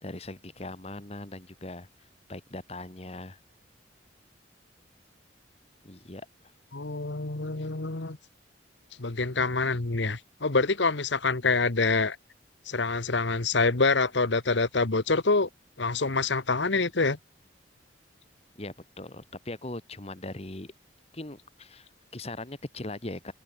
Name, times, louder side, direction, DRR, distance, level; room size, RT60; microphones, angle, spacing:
voice 1, 0.0-3.4 5.8-6.3 18.5-20.7 21.1-23.3, left 2 dB, 35° left, 1.7 m, -40 dB
voice 2, 6.7-8.2 9.0-12.2 12.6-15.5 15.8-17.2, left 3 dB, 75° left, 1.4 m, -26 dB
head